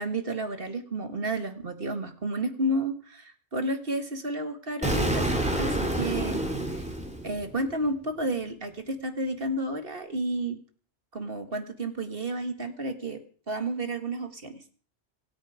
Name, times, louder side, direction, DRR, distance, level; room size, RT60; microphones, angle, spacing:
voice 1, 0.0-6.4 6.8-6.9 7.2-10.6 11.1-14.6, right 1 dB, 55° right, 7 dB, 2.0 m, -31 dB
Explosion, 4.8-7.7, right 1 dB, 5° right, 2.7 m, -28 dB
26.0 x 9.0 x 5.0 m, 0.43 s
omnidirectional pair, 1.1 m